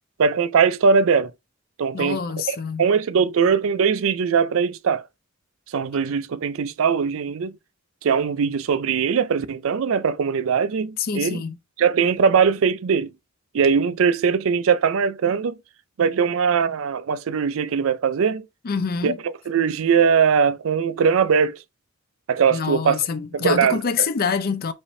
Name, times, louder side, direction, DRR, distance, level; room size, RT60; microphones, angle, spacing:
voice 1, 0.2-1.3 1.8-2.2 2.5-5.0 5.7-7.6 8.0-11.4 11.8-13.1 13.5-15.6 16.0-18.5 19.0-21.6 22.3-23.0 23.3-23.8, right 6 dB, 70° right, 0.4 m, -20 dB
voice 2, 1.9-2.9 11.0-11.6 18.6-19.2 22.5-24.7, left 6 dB, 45° left, 0.5 m, -26 dB
5.4 x 3.4 x 2.6 m
head